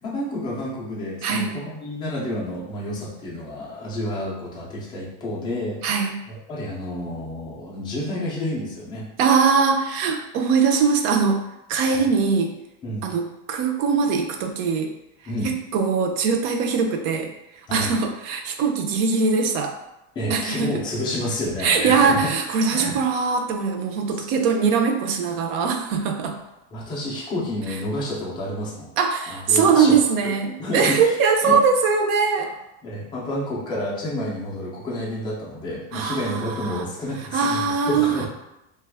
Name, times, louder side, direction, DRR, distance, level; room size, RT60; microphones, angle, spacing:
voice 1, 0.0-5.8 6.3-9.1 11.9-12.0 12.8-13.1 15.3-15.5 17.7-17.9 20.2-22.3 22.7-23.0 24.2-24.3 26.7-28.9 29.3-30.0 30.2-30.3 30.6-31.6 32.4-32.5 32.8-38.3, left 1 dB, 15° left, -4 dB, 0.3 m, -29 dB
voice 2, 1.2-1.6 5.8-6.2 9.2-11.4 11.7-12.5 13.0-14.9 15.4-17.3 17.7-19.7 20.3-20.7 21.6-26.4 29.0-32.5 35.9-36.8 37.2-38.3, right 5 dB, 55° right, 3 dB, 0.5 m, -21 dB
2.9 x 2.3 x 3.3 m, 0.90 s
cardioid pair, 170°, 36 cm